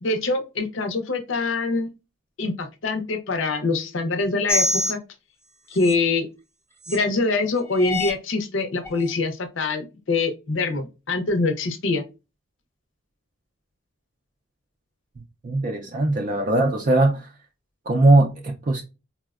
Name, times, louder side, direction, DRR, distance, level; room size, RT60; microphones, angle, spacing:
voice 1, 0.0-1.9 2.4-5.0 5.7-6.3 6.9-12.0, left 3 dB, 65° left, 0.6 m, -24 dB
sound 1, 4.5-4.9 5.7-5.9 6.8-7.0 7.7-8.1 8.8-8.9, left 1 dB, 10° left, 0.5 m, -24 dB
voice 2, 15.4-17.3 17.9-18.8, right 2 dB, 40° right, 0.4 m, -20 dB
4.2 x 2.1 x 2.3 m
head